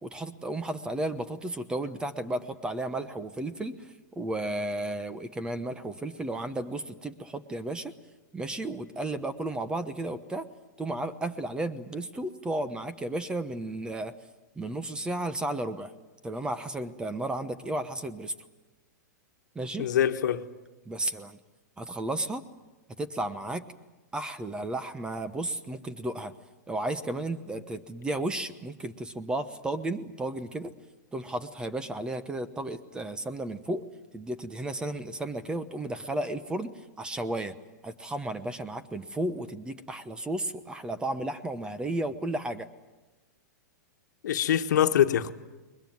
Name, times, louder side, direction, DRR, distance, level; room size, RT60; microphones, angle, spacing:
voice 1, 0.0-3.9 4.2-7.9 8.3-10.5 10.8-14.1 14.6-15.9 16.2-18.3 19.5-19.9 20.9-21.4 21.8-22.4 23.0-23.6 24.1-26.3 26.7-30.7 31.1-33.8 34.1-37.6 37.8-42.7, right 1 dB, 10° right, 12 dB, 1.0 m, -33 dB
voice 2, 19.8-20.4 44.2-45.3, left 10 dB, 75° left, 8 dB, 1.4 m, -24 dB
21.5 x 21.0 x 9.4 m, 1.1 s
hypercardioid pair, 140°, 10 cm